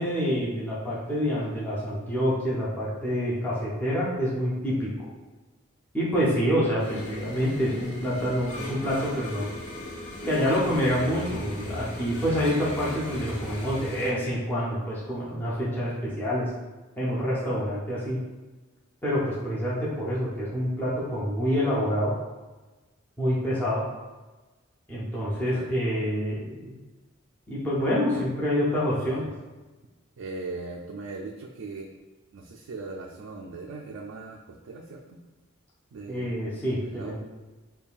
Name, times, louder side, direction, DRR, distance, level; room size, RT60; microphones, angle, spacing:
voice 1, 0.0-5.1 5.9-9.5 10.2-16.5 17.0-18.2 19.0-22.1 23.2-23.8 24.9-26.8 27.5-29.3 36.1-37.2, equal, 10° left, -8 dB, 0.6 m, -27 dB
sound 1, 6.8-14.1, left 1 dB, 55° left, 0.8 m, -37 dB
voice 2, 27.9-28.3 29.1-29.3 30.2-31.9 32.3-35.2 35.9-36.3 36.8-37.2, right 3 dB, 65° right, -1 dB, 0.3 m, -39 dB
5.3 x 2.3 x 2.4 m, 1.2 s
head